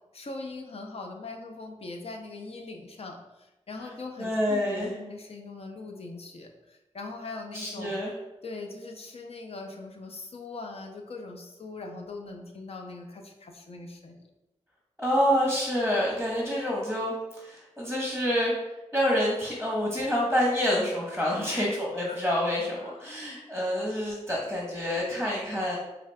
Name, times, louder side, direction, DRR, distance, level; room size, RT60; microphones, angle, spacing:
voice 1, 0.1-8.0 8.4-14.2 21.4-21.7 22.1-22.2 22.8-23.0, left 3 dB, 55° left, 3 dB, 0.6 m, -41 dB
voice 2, 4.2-4.9 7.5-8.1 15.0-18.5 18.9-25.8, equal, 5° left, -3 dB, 1.0 m, -27 dB
4.9 x 2.4 x 2.2 m, 0.99 s
cardioid pair, 45°, 12 cm